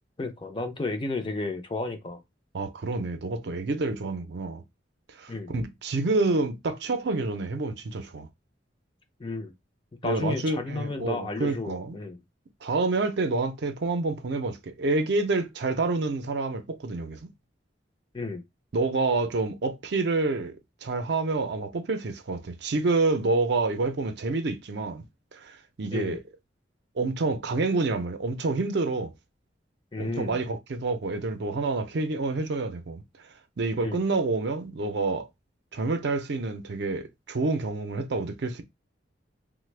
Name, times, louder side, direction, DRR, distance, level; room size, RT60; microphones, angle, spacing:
voice 1, 0.2-2.2 5.3-5.5 9.2-9.5 10.0-12.2 18.1-18.4 25.9-26.2 29.9-30.4 33.8-34.0, left 3 dB, 25° left, 0.4 m, -32 dB
voice 2, 2.5-4.6 5.2-8.3 10.0-12.0 12.6-17.3 18.7-25.0 25.3-26.2 27.0-29.1 30.0-33.0 33.6-35.3 35.7-38.6, right 3 dB, 60° right, 0.5 m, -28 dB
3.2 x 2.1 x 3.2 m
head